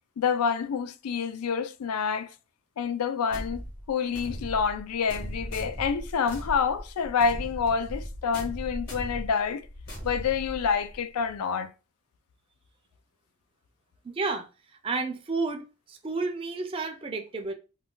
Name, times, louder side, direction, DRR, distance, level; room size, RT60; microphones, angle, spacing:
voice 1, 0.2-2.3 2.8-3.6 3.9-9.6 10.0-11.7, left 6 dB, 90° left, 0.4 m, -27 dB
sound 1, 3.3-11.0, equal, 45° left, 1.1 m, -38 dB
voice 2, 14.0-15.6 15.9-17.5, right 3 dB, 25° right, 0.3 m, -31 dB
2.3 x 2.2 x 3.7 m
head